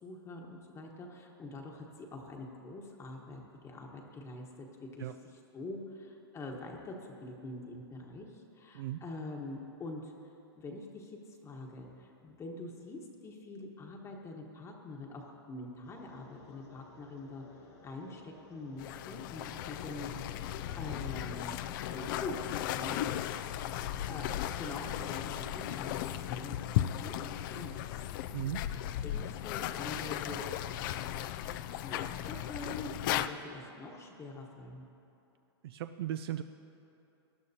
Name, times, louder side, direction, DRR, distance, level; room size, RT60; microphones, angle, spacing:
voice 1, 0.0-6.9 7.2-10.1 10.5-17.4 17.8-21.5 21.9-23.4 24.1-24.3 24.6-28.0 29.0-30.5 31.8-34.9, left 2 dB, 20° left, 0 dB, 1.2 m, -45 dB
sound 1, 15.8-24.8, left 3 dB, 80° left, 2.5 m, -57 dB
sound 2, 18.8-33.3, left 12 dB, 50° left, 0.4 m, -36 dB
voice 2, 28.3-28.6 35.6-36.4, right 12 dB, 65° right, 10 dB, 0.4 m, -36 dB
19.0 x 11.0 x 2.8 m, 2.8 s
hypercardioid pair, 130°, 14 cm